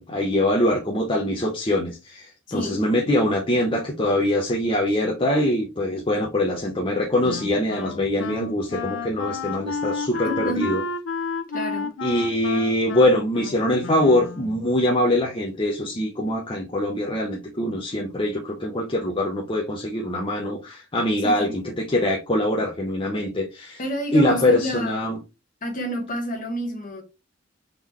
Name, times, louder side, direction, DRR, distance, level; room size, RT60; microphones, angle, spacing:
voice 1, 0.0-10.8 12.0-23.8 24.1-25.2, left 1 dB, 25° left, 0.8 m, -23 dB
voice 2, 2.5-2.8 10.2-10.8 11.5-11.9 21.2-21.5 23.8-25.1 25.6-27.0, equal, 45° left, 1.4 m, -29 dB
Wind instrument woodwind instrument, 7.2-14.7, left 4 dB, 85° left, 0.6 m, -31 dB
3.9 x 3.7 x 3.1 m
head